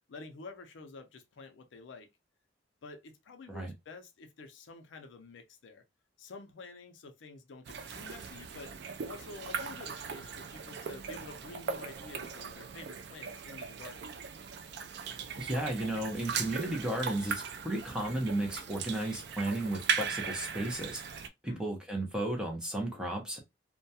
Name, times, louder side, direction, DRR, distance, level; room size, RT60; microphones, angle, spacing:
voice 1, 0.1-2.1 2.8-5.8 6.2-8.8 9.0-14.1 21.5-21.6, left 3 dB, 70° left, 0.4 m, -49 dB
sound 1, 7.7-21.3, right 6 dB, 60° right, 0.3 m, -39 dB
voice 2, 15.4-21.0 21.4-23.4, right 1 dB, 5° right, 0.6 m, -34 dB
2.2 x 2.1 x 2.6 m
head